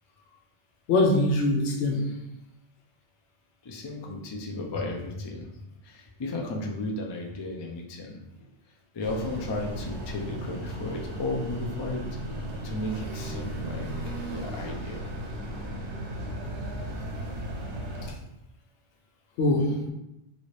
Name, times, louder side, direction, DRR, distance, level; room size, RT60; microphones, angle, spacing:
voice 1, 0.9-2.1 18.0-18.1 19.4-19.9, left 2 dB, 85° left, 0.9 m, -23 dB
voice 2, 3.6-5.5 5.8-8.2 8.9-12.0 12.6-15.1, left 2 dB, 45° left, 0.3 m, -34 dB
sound 1, 9.0-18.1, right 1 dB, 80° right, 1.0 m, -35 dB
3.2 x 2.7 x 3.2 m
omnidirectional pair, 1.1 m